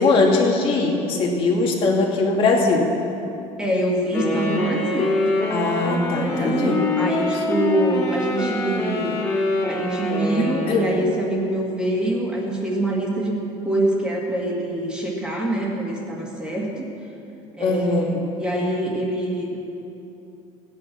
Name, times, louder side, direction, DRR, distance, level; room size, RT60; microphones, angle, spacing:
voice 1, 0.0-2.9 5.5-6.8 10.4-10.9 17.6-18.1, left 3 dB, 45° left, 0 dB, 2.3 m, -20 dB
voice 2, 3.6-5.2 6.3-9.2 9.6-13.4 13.6-16.8 17.5-19.6, right 1 dB, 5° right, -3 dB, 2.2 m, -25 dB
Wind instrument woodwind instrument, 4.1-11.1, left 2 dB, 20° left, 3.3 m, -25 dB
17.0 x 9.8 x 6.3 m, 2.8 s
cardioid pair, 155°, 13 cm